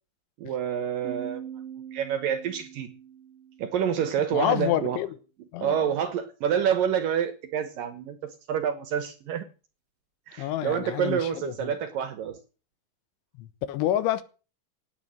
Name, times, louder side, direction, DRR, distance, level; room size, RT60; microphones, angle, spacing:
voice 1, 0.4-1.4 1.9-2.9 3.6-5.0 5.6-9.5 10.3-12.4, right 8 dB, 70° right, 2.3 m, -28 dB
Piano, 1.0-4.5, right 9 dB, 45° right, 2.2 m, -42 dB
voice 2, 4.3-5.1 5.5-5.8 10.4-11.8 13.4-14.2, left 13 dB, 90° left, 3.6 m, -28 dB
18.0 x 9.5 x 6.4 m
omnidirectional pair, 5.2 m